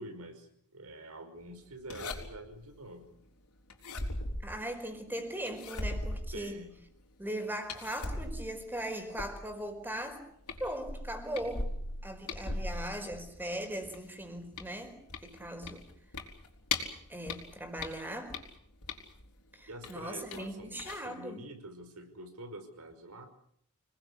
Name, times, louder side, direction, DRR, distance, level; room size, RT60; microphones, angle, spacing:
voice 1, 0.0-3.2 6.3-6.8 12.5-12.8 19.7-23.3, right 1 dB, 85° right, 7 dB, 5.4 m, -47 dB
sound 1, 1.9-2.6 3.7-5.0 5.5-6.8 7.7-9.6 10.1-10.2 10.5-13.4 13.8-17.0 17.3-19.3 19.8-20.5 20.8-21.0, left 2 dB, 90° left, 4.6 m, -39 dB
voice 2, 4.4-6.6 7.2-10.2 10.6-11.7 12.0-15.9 17.1-18.4 19.5-21.4, right 1 dB, 10° right, 6 dB, 4.7 m, -39 dB
27.0 x 20.0 x 8.5 m, 0.66 s
head